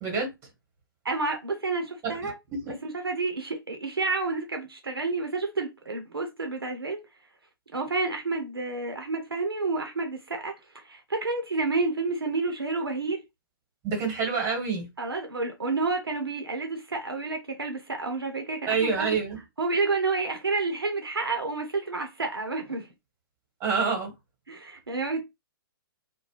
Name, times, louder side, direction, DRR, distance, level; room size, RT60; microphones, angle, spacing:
voice 1, 1.0-2.3 2.8-7.0 7.7-13.2 15.0-19.2 19.6-22.9 24.5-25.2, right 3 dB, 80° right, 0.7 m, -30 dB
voice 2, 13.8-14.9 18.7-19.4 23.6-24.1, right 5 dB, 25° right, 1.3 m, -27 dB
2.3 x 2.2 x 3.2 m
figure-of-eight pair, 115°, 12 cm